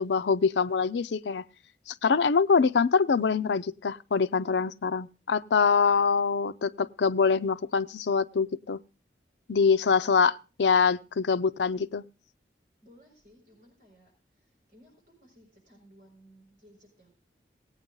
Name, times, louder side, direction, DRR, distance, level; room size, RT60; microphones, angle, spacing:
voice 1, 0.0-1.4 1.9-8.8 9.5-12.0, left 5 dB, 85° left, 14 dB, 0.5 m, -24 dB
voice 2, 12.8-17.1, equal, 45° right, 0 dB, 6.3 m, -58 dB
18.0 x 8.8 x 3.8 m, 0.34 s
head